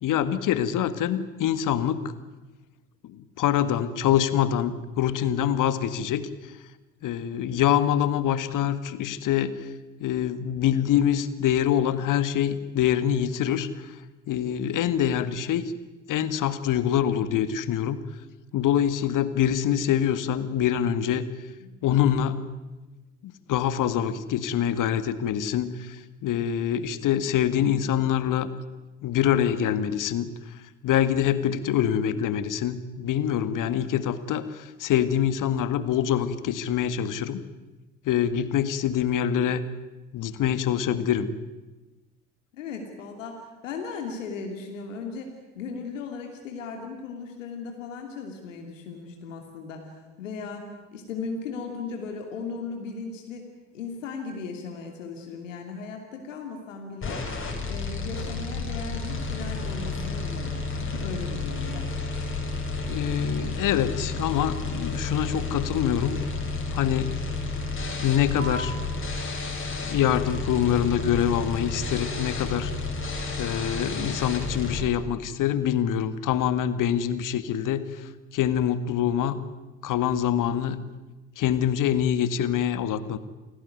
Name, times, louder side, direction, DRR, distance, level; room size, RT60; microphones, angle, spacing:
voice 1, 0.0-2.0 3.0-6.6 7.0-9.7 10.0-14.0 14.3-15.7 16.1-18.0 18.5-21.3 21.8-22.4 23.2-28.5 29.0-37.4 38.1-39.6 40.1-41.3 62.9-66.2 66.7-67.1 68.0-68.9 69.8-72.7 73.4-79.4 79.8-80.8 81.4-83.2, left 10 dB, 55° left, 13 dB, 1.9 m, -25 dB
voice 2, 42.5-57.3 57.6-62.0, left 4 dB, 80° left, 3 dB, 2.9 m, -37 dB
sound 1, 57.0-74.8, left 3 dB, 30° left, 7.2 m, -31 dB
sound 2, 68.4-75.4, right 3 dB, 25° right, 2.9 m, -47 dB
28.5 x 18.5 x 9.5 m, 1.1 s
figure-of-eight pair, 55°, 38 cm